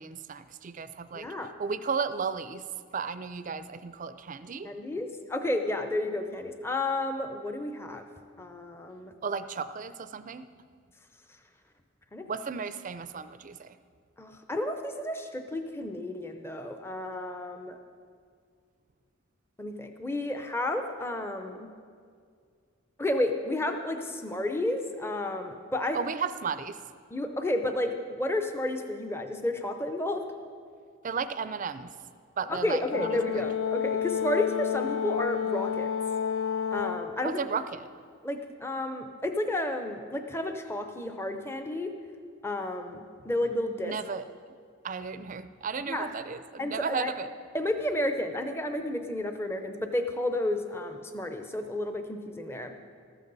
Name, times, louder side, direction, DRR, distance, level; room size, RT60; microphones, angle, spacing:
voice 1, 0.0-1.3 1.6-2.6 2.9-4.7 9.2-10.5 12.3-13.8 25.9-26.8 31.0-31.9 32.4-33.5 37.2-37.9 43.8-44.2 44.8-47.3, right 5 dB, 40° right, 12 dB, 0.4 m, -34 dB
voice 2, 1.1-1.5 4.6-8.0 8.4-9.1 12.1-12.2 14.2-17.8 19.6-21.7 23.0-26.0 27.1-30.2 32.5-35.9 36.7-37.4 38.2-41.9 42.4-43.9 45.9-46.1 46.6-47.1 47.5-52.7, left 1 dB, 10° left, 6 dB, 0.6 m, -31 dB
Brass instrument, 32.9-37.1, left 8 dB, 70° left, 0.4 m, -30 dB
13.5 x 13.0 x 4.0 m, 2.1 s
head